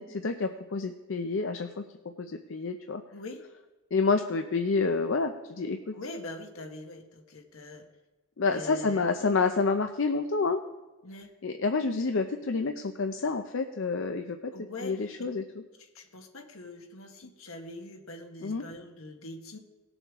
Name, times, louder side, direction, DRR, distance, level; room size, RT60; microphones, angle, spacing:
voice 1, 0.0-1.8 2.2-3.0 3.9-5.9 8.4-10.6 11.4-14.4 14.8-15.4 18.4-18.6, left 4 dB, 60° left, 6 dB, 0.5 m, -28 dB
voice 2, 5.9-7.9 8.5-9.0 11.0-11.3 14.5-15.1 15.8-19.6, left 2 dB, 75° left, 5 dB, 1.4 m, -43 dB
18.5 x 7.0 x 3.6 m, 1.2 s
head